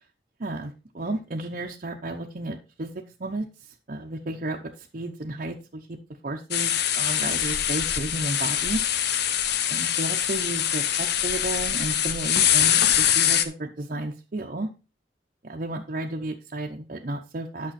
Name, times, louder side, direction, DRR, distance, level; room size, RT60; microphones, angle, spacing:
voice 1, 0.4-3.5 3.9-6.0 6.2-9.1 9.7-14.7 15.4-17.7, right 2 dB, 45° right, 0 dB, 0.8 m, -33 dB
sound 1, 6.5-13.4, left 10 dB, 60° left, 0.7 m, -23 dB
8.9 x 6.2 x 4.2 m, 0.31 s
head